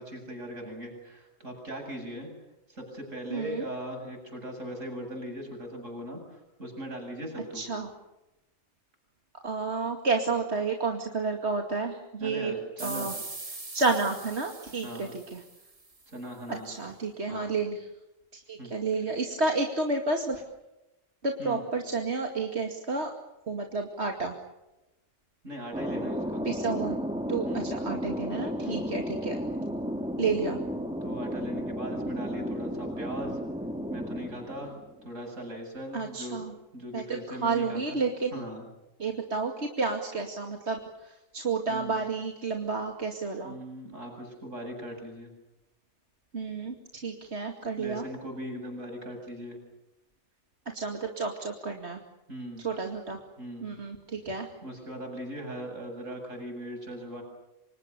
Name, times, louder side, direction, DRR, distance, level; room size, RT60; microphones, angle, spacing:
voice 1, 0.0-2.3 2.7-7.6 12.2-13.1 14.8-15.1 16.1-16.7 17.3-17.5 18.6-18.7 21.4-21.6 25.4-26.5 27.4-27.7 28.6-28.9 31.0-33.4 33.9-34.7 35.0-36.4 36.7-38.0 38.3-38.6 41.7-42.0 43.4-45.3 47.8-49.6 52.3-52.7 53.4-53.8 54.6-57.2, equal, 90° right, 2 dB, 8.4 m, -39 dB
voice 2, 3.3-3.6 7.5-7.9 9.4-12.5 12.8-13.1 13.5-15.4 16.5-17.9 18.3-20.4 21.2-23.1 23.5-24.4 26.4-27.0 27.3-29.4 30.2-30.6 35.9-36.5 36.9-38.4 39.0-43.6 46.3-48.0 50.7-52.0 52.6-53.2 53.6-54.5, right 4 dB, 60° right, 2 dB, 2.7 m, -31 dB
sound 1, 12.8-16.1, right 3 dB, 30° right, 1.7 m, -42 dB
Thunder, 25.7-35.0, equal, 5° right, 3.5 m, -33 dB
29.5 x 26.5 x 6.9 m, 0.97 s
omnidirectional pair, 1.3 m